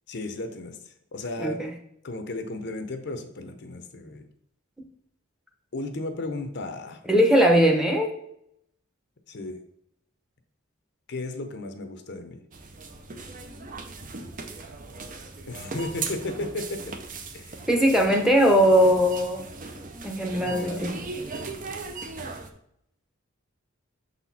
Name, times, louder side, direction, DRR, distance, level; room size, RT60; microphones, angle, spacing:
voice 1, 0.1-0.8 1.1-1.6 2.0-4.3 5.7-7.0 9.3-9.6 11.1-12.4 15.5-16.8 17.3-17.6 20.3-20.9, left 2 dB, 55° left, 7 dB, 0.7 m, -34 dB
voice 2, 1.4-1.7 7.1-8.1 17.7-19.4 20.0-20.9, equal, ahead, 2 dB, 0.8 m, -20 dB
sound 1, 12.5-22.5, right 3 dB, 40° right, 0.7 m, -38 dB
6.7 x 4.2 x 4.1 m, 0.74 s
head